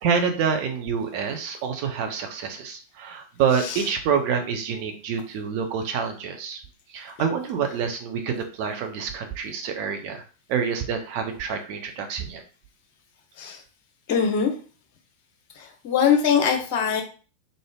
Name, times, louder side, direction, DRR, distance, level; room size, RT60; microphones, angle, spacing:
voice 1, 0.0-6.6 6.9-10.2 10.5-12.4, right 6 dB, 45° right, 4 dB, 0.8 m, -27 dB
voice 2, 14.1-14.5 15.5-17.0, left 7 dB, 45° left, 3 dB, 0.9 m, -22 dB
3.9 x 3.3 x 2.4 m, 0.37 s
figure-of-eight pair, 90°, 0 cm